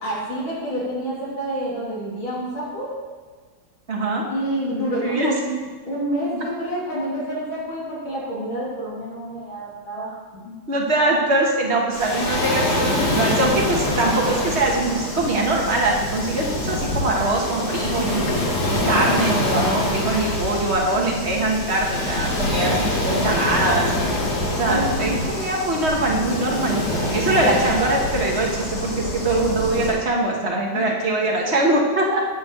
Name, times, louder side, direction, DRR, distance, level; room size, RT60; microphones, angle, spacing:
voice 1, 0.0-2.9 4.3-10.6 24.7-25.2 27.4-27.5 30.7-30.9, right 1 dB, 80° left, -6 dB, 3.6 m, -28 dB
voice 2, 3.9-4.2 5.0-5.3 10.7-18.3 18.8-23.9 24.5-32.2, right 2 dB, 35° right, -1 dB, 1.4 m, -22 dB
Waves surf, 11.9-30.0, left 1 dB, 55° left, 2.0 m, -25 dB
8.9 x 4.6 x 7.3 m, 1.4 s
omnidirectional pair, 2.2 m